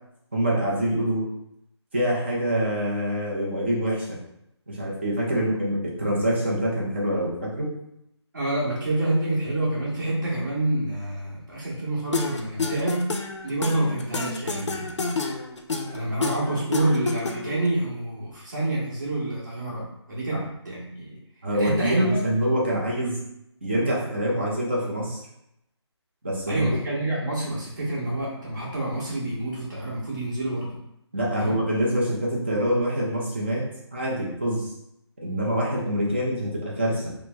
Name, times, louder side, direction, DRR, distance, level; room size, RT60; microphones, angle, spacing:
voice 1, 0.3-1.3 1.9-4.2 4.7-7.7 20.3-20.4 21.4-23.2 23.6-25.2 26.2-26.7 31.1-34.7 35.2-37.1, equal, 25° right, -4 dB, 0.6 m, -25 dB
voice 2, 8.3-13.0 13.4-15.0 15.9-21.2 21.6-22.2 26.5-30.7 31.4-31.6, right 1 dB, 40° right, -6 dB, 1.2 m, -27 dB
sound 1, 12.1-17.7, left 4 dB, 85° left, 0.5 m, -29 dB
3.1 x 2.0 x 3.2 m, 0.80 s
figure-of-eight pair, 175°, 15 cm